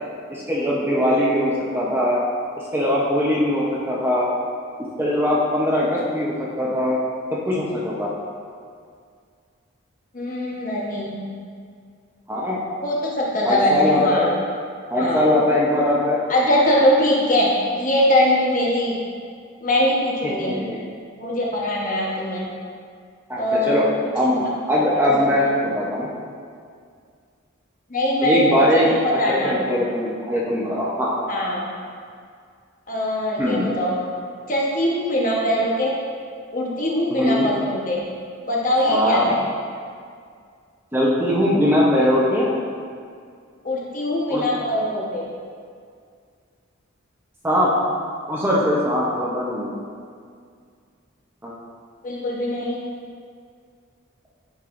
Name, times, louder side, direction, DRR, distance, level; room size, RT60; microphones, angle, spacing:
voice 1, 0.3-2.2 2.7-4.3 5.0-7.0 7.4-8.1 12.3-12.6 13.4-14.3 14.9-16.2 20.4-20.8 23.3-23.9 24.1-24.4 24.7-25.5 25.7-26.1 28.2-28.9 29.3-31.2 33.4-33.7 37.2-37.5 38.9-39.3 40.9-42.5 44.3-44.4 47.4-47.7 48.3-49.7 51.4-51.5, left 1 dB, 10° right, -6 dB, 0.7 m, -21 dB
voice 2, 10.1-11.2 12.8-14.3 15.0-15.2 16.3-17.5 17.8-19.0 19.6-20.5 21.2-22.5 23.4-23.8 25.0-25.4 27.9-29.5 31.3-31.7 32.9-33.9 34.5-35.9 36.5-38.0 38.5-39.4 43.6-45.2 52.0-52.8, left 1 dB, 40° left, -4 dB, 1.1 m, -22 dB
8.5 x 5.4 x 2.6 m, 2.2 s
head